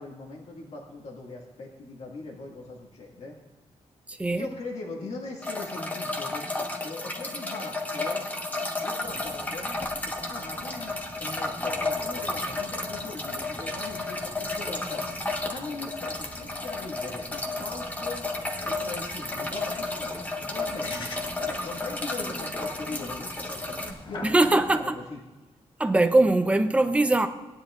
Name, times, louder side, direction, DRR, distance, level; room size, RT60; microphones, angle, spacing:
voice 1, 0.0-3.4 4.3-8.2 8.8-9.7 10.0-15.0 15.5-18.2 18.6-21.1 21.4-23.8 24.0-25.2, left 3 dB, 65° left, 2.0 m, -40 dB
voice 2, 4.1-4.5 24.2-25.0 25.8-27.3, right 2 dB, 10° right, 0.6 m, -21 dB
sound 1, 5.4-23.9, left 2 dB, 15° left, 1.2 m, -32 dB
sound 2, 9.0-24.8, left 2 dB, 45° left, 1.4 m, -45 dB
18.5 x 10.0 x 2.5 m
wide cardioid pair, 150°, 12 cm